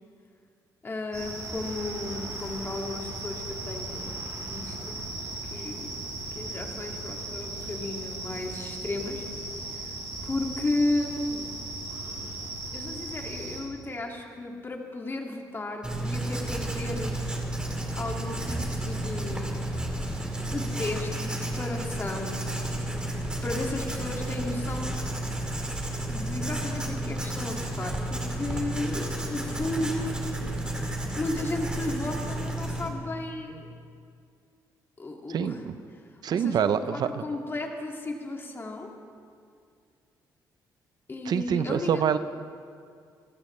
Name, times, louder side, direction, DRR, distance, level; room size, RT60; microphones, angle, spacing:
voice 1, 0.8-5.0 5.4-6.0 6.3-9.3 9.6-9.9 10.2-11.5 12.7-17.1 17.9-19.6 20.5-22.4 23.4-25.0 26.1-30.2 31.1-33.7 35.0-35.6 35.9-36.0 36.3-38.9 41.1-42.0, left 2 dB, 30° left, 1 dB, 2.3 m, -34 dB
sound 1, 1.1-13.6, right 2 dB, 45° right, 4.5 m, -37 dB
Writing, 15.8-32.9, right 1 dB, 10° right, 2.4 m, -32 dB
voice 2, 35.3-35.7 36.2-37.2 41.3-42.2, right 8 dB, 65° right, 12 dB, 0.6 m, -26 dB
27.5 x 14.5 x 3.3 m, 2.3 s
cardioid pair, 100°, 8 cm